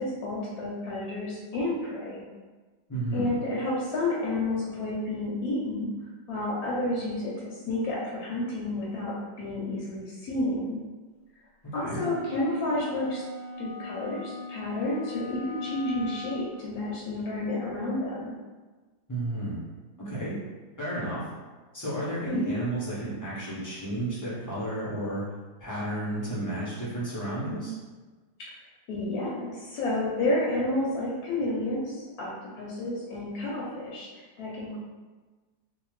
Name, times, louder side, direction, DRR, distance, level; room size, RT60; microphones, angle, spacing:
voice 1, 0.0-2.2 3.1-5.9 6.3-10.8 11.7-13.2 13.6-18.4 22.3-22.6 28.9-34.1 34.4-34.8, left 2 dB, 70° left, -5 dB, 1.0 m, -30 dB
voice 2, 2.9-3.3 11.6-12.0 19.1-19.6 20.0-20.3 20.8-21.2 21.7-25.2 25.6-27.7, right 1 dB, 25° left, -10 dB, 0.4 m, -32 dB
sound 1, 11.9-16.5, left 2 dB, 65° right, 0.6 m, -39 dB
2.7 x 2.3 x 3.1 m, 1.3 s
omnidirectional pair, 1.8 m